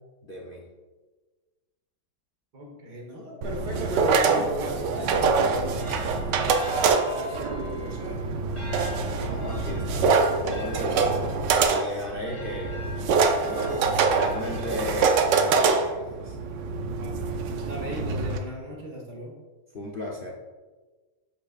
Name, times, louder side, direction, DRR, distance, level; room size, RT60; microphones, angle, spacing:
voice 1, 0.2-0.7 9.2-11.3 11.7-12.8 13.4-16.4 19.7-20.3, left 1 dB, 45° left, -2 dB, 0.7 m, -35 dB
voice 2, 2.5-6.0 7.0-8.3 17.0-19.3, equal, 70° right, 1 dB, 2.0 m, -37 dB
sound 1, 3.4-18.4, right 4 dB, 90° right, 1.3 m, -25 dB
sound 2, 5.4-15.3, left 1 dB, 15° left, 2.1 m, -43 dB
7.9 x 6.7 x 2.4 m, 1.3 s
omnidirectional pair, 1.8 m